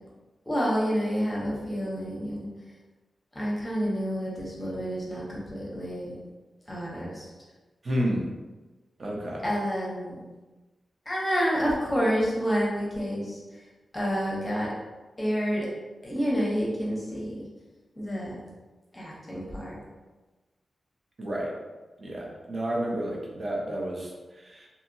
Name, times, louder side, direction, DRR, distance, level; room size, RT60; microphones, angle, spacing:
voice 1, 0.5-2.5 3.3-6.2 6.7-7.3 9.4-10.3 11.1-13.4 13.9-14.7 15.2-15.7 16.0-17.3 18.0-18.4 18.9-19.8, equal, 10° left, -5 dB, 0.7 m, -29 dB
voice 2, 7.8-8.3 9.0-9.4 21.2-21.5 22.0-24.7, equal, 40° right, -2 dB, 0.6 m, -31 dB
2.7 x 2.7 x 2.6 m, 1.2 s
wide cardioid pair, 170°, 0 cm